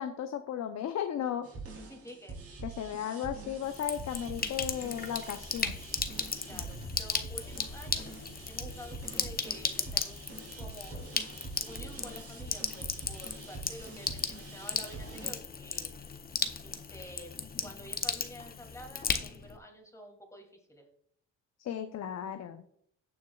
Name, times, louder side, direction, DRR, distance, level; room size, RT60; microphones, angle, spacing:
voice 1, 0.0-1.5 2.6-5.7 21.6-22.6, left 9 dB, 60° left, 8 dB, 0.7 m, -35 dB
sound 1, 1.4-15.3, right 2 dB, 50° right, 3.7 m, -45 dB
voice 2, 1.9-2.4 6.4-8.1 8.4-10.2 10.6-11.0 11.6-15.9 16.6-20.8, equal, 10° left, 1 dB, 2.7 m, -49 dB
Sink (filling or washing), 3.6-19.6, left 5 dB, 30° left, 0.8 m, -36 dB
17.0 x 6.3 x 2.4 m, 0.68 s
cardioid pair, 90°, 30 cm